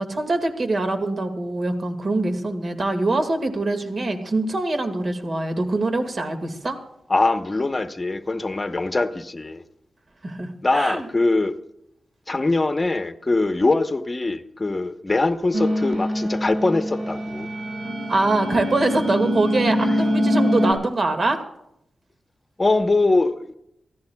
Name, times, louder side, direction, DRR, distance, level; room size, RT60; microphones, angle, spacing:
voice 1, 0.0-6.8 10.2-11.1 18.1-21.4, right 2 dB, 50° right, 1.9 m, -24 dB
voice 2, 7.1-9.6 10.6-11.6 12.3-17.5 22.6-23.4, left 2 dB, 30° left, 0.9 m, -22 dB
sound 1, 15.5-20.7, equal, 85° right, 4.9 m, -24 dB
22.5 x 16.0 x 2.3 m
wide cardioid pair, 90°, 0 cm